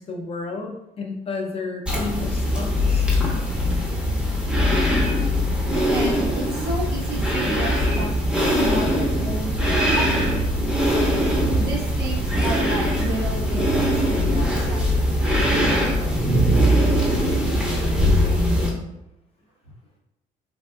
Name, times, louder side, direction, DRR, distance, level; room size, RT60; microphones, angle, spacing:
voice 1, 0.0-3.1 18.0-18.9, left 3 dB, 35° left, 2 dB, 0.5 m, -32 dB
sound 1, 1.9-18.7, equal, 5° right, 0.6 m, -21 dB
voice 2, 5.9-8.1 8.5-10.3 11.5-14.9, equal, 85° right, -4 dB, 1.1 m, -31 dB
3.3 x 2.5 x 2.3 m, 0.87 s
cardioid pair, 110°, 17 cm